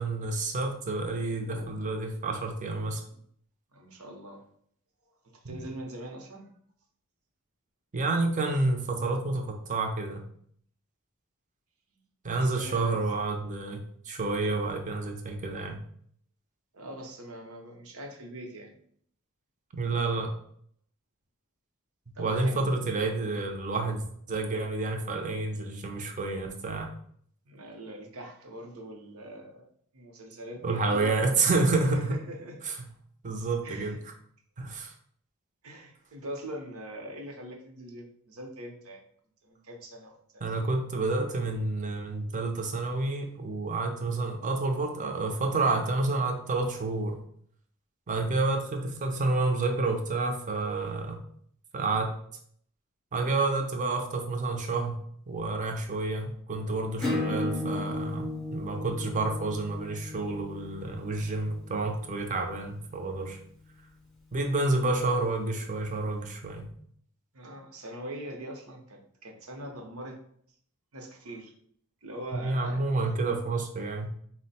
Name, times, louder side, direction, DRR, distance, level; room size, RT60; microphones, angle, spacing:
voice 1, 0.0-3.0 5.4-5.5 7.9-10.2 12.2-15.8 19.8-20.4 22.2-26.9 30.6-32.2 32.6-32.7 33.2-33.9 34.6-34.9 40.4-47.2 48.1-51.2 51.7-52.2 53.1-63.4 64.3-66.7 72.3-74.1, right 3 dB, 35° right, 3 dB, 0.6 m, -29 dB
voice 2, 3.7-4.4 5.2-6.5 12.3-13.0 16.7-18.7 22.1-22.8 27.5-29.7 29.9-31.1 31.7-32.6 33.6-34.0 35.6-39.0 39.4-40.4 67.3-70.2 70.9-71.5 72.0-72.9, right 1 dB, 70° right, 2 dB, 0.8 m, -42 dB
Acoustic guitar / Strum, 57.0-62.3, left 2 dB, ahead, 0.7 m, -35 dB
4.2 x 2.1 x 4.1 m, 0.63 s
head